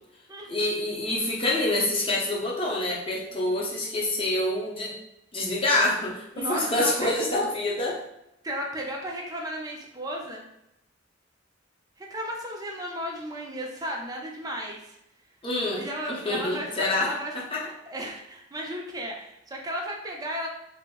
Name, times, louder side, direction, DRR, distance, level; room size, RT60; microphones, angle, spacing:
voice 1, 0.5-4.9 5.3-8.0 15.4-15.8 16.1-17.1 17.3-17.6, left 2 dB, 30° left, -4 dB, 0.7 m, -26 dB
voice 2, 6.3-7.2 8.4-10.5 12.0-15.0 15.7-17.3 17.9-20.5, equal, 20° right, 0 dB, 0.5 m, -34 dB
3.1 x 2.0 x 3.4 m, 0.84 s
head